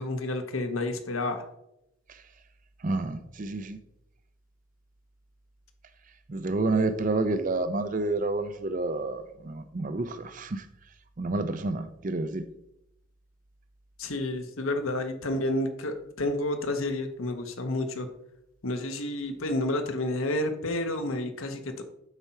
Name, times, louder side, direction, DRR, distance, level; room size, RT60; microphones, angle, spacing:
voice 1, 0.0-1.5 14.0-18.1 18.6-21.8, left 1 dB, 75° left, 1.0 m, -30 dB
voice 2, 2.8-3.8 6.3-10.6 11.2-12.4, right 2 dB, 40° right, 0.5 m, -29 dB
8.1 x 4.4 x 5.7 m
head